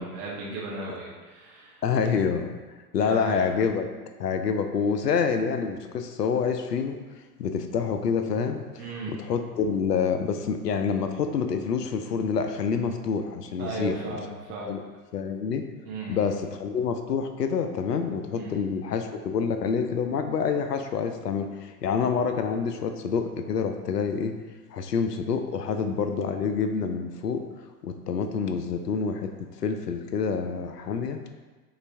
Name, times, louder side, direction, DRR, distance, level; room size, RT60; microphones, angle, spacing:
voice 1, 0.0-1.8 2.9-3.4 8.8-9.2 13.6-14.8 15.9-16.2 18.3-18.6, right 3 dB, 15° right, -5 dB, 0.4 m, -36 dB
voice 2, 1.8-2.6 2.9-3.9 4.2-7.0 7.4-8.6 9.1-14.0 14.7-14.8 15.1-15.6 16.1-24.4 24.7-27.4 27.8-29.3 29.6-31.2, left 6 dB, 80° left, 7 dB, 0.5 m, -27 dB
5.1 x 2.4 x 3.2 m, 1.3 s
figure-of-eight pair, 90°, 47 cm